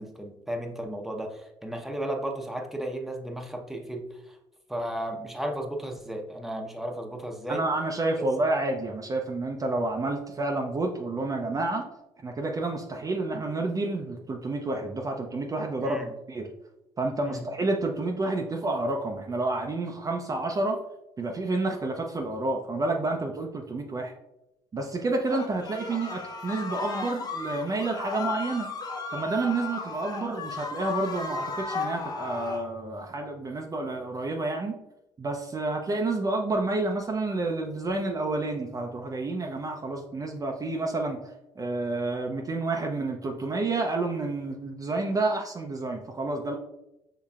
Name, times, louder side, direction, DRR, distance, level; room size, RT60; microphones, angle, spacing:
voice 1, 0.0-4.0 4.7-7.6 8.2-8.3 15.8-16.1 17.2-17.4, right 1 dB, 5° right, 2 dB, 0.8 m, -34 dB
voice 2, 7.5-11.9 12.2-16.5 17.0-20.8 21.2-24.1 24.7-28.7 29.1-34.8 35.2-41.2 41.6-46.6, right 2 dB, 30° right, 1 dB, 0.6 m, -29 dB
sound 1, 25.3-32.7, left 4 dB, 35° left, 0.8 m, -35 dB
5.6 x 3.2 x 2.4 m, 0.89 s
supercardioid pair, 70°, 11 cm